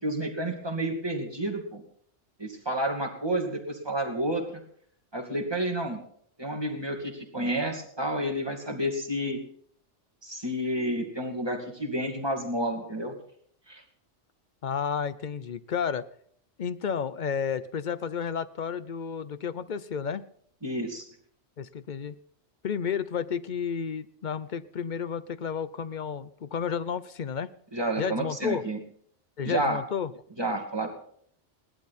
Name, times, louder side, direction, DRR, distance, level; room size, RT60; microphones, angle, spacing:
voice 1, 0.0-1.8 2.4-4.6 5.1-6.0 6.4-9.4 10.2-13.2 13.7-13.8 20.6-21.1 27.7-28.8 29.4-29.8 30.4-30.9, right 1 dB, 20° right, 2 dB, 2.5 m, -30 dB
voice 2, 14.6-16.0 16.6-20.2 21.6-22.2 22.6-27.5 28.0-28.6 29.4-30.1, left 7 dB, 45° left, 15 dB, 0.7 m, -31 dB
18.5 x 12.0 x 4.2 m, 0.63 s
omnidirectional pair, 1.2 m